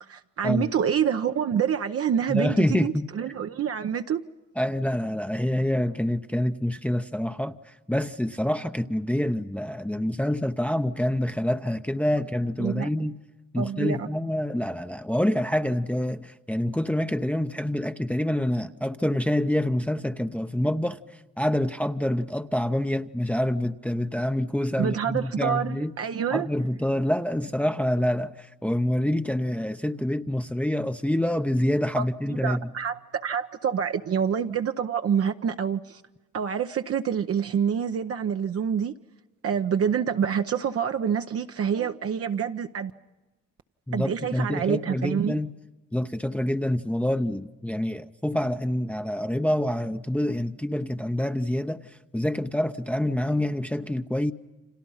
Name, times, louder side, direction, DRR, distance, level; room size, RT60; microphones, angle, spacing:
voice 1, 0.0-4.2 12.6-12.9 13.6-14.1 24.8-26.5 32.0-32.1 32.4-36.0 36.3-38.9 39.4-42.9 43.9-45.4, right 8 dB, 50° right, 0.8 m, -27 dB
voice 2, 2.3-3.1 4.6-13.1 13.5-21.0 21.4-25.9 26.3-32.6 43.9-45.5 45.9-51.8 52.1-54.3, left 1 dB, 5° left, 0.8 m, -26 dB
30.0 x 26.0 x 5.6 m
cardioid pair, 90°, 30 cm